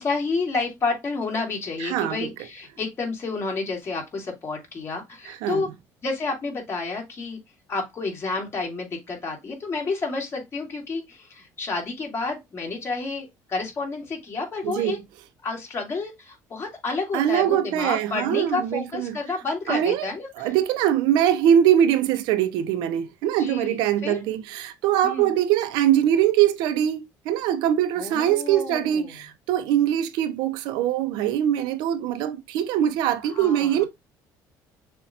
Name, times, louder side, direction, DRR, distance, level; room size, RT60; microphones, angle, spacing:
voice 1, 0.0-5.7 6.0-7.4 7.7-15.0 15.4-20.3 23.4-23.8 24.0-24.2 25.0-25.3 28.0-29.1 33.3-33.9, left 3 dB, 35° left, 2.0 m, -30 dB
voice 2, 1.8-2.3 5.3-5.7 14.6-15.0 17.1-19.2 19.7-20.1 20.4-33.8, right 10 dB, 80° right, 0.5 m, -22 dB
6.5 x 2.2 x 2.7 m
cardioid pair, 120°, 7 cm